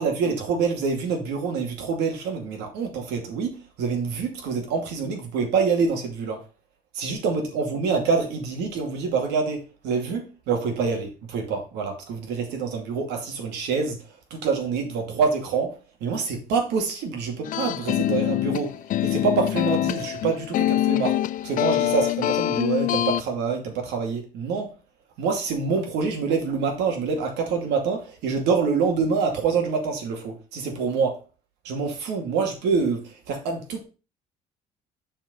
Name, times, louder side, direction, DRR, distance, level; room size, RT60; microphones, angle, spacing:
voice 1, 0.0-6.4 7.0-24.7 25.2-31.2 31.6-33.8, right 5 dB, 85° right, 2.4 m, -26 dB
sound 1, 17.4-23.2, left 13 dB, 55° left, 0.4 m, -24 dB
7.1 x 4.6 x 5.6 m
cardioid pair, 110°, 17 cm